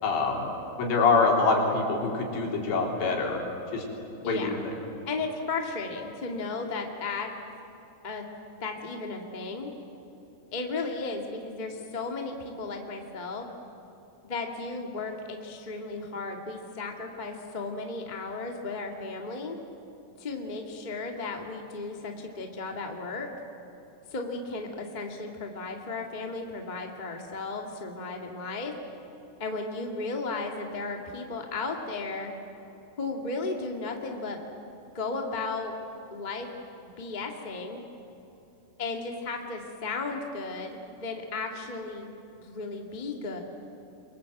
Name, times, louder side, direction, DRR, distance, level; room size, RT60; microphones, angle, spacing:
voice 1, 0.0-0.5 0.8-3.4 3.7-3.8 4.3-4.7, left 4 dB, 80° left, 0 dB, 5.7 m, -25 dB
voice 2, 5.0-7.3 8.0-8.2 8.6-9.7 10.5-13.5 14.2-19.6 20.2-23.3 24.1-28.7 29.4-32.3 33.0-34.4 34.9-35.8 36.1-36.5 36.8-37.8 38.8-43.4, left 3 dB, 25° left, 2 dB, 0.9 m, -35 dB
27.5 x 23.0 x 8.0 m, 3.0 s
omnidirectional pair, 5.0 m